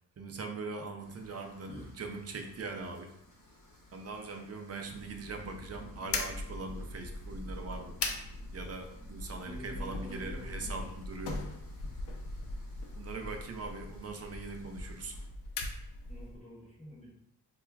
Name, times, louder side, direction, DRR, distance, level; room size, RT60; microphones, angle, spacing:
voice 1, 0.2-3.1 3.9-7.9 8.5-11.5 13.0-15.2, right 3 dB, 40° right, 4 dB, 0.5 m, -41 dB
sound 1, 1.0-15.3, left 1 dB, 45° left, 1.1 m, -55 dB
sound 2, 6.1-16.4, left 3 dB, 85° left, 0.6 m, -40 dB
voice 2, 9.3-11.0 16.1-17.1, equal, 15° left, -6 dB, 0.8 m, -48 dB
4.3 x 2.3 x 2.3 m, 0.78 s
wide cardioid pair, 130°, 41 cm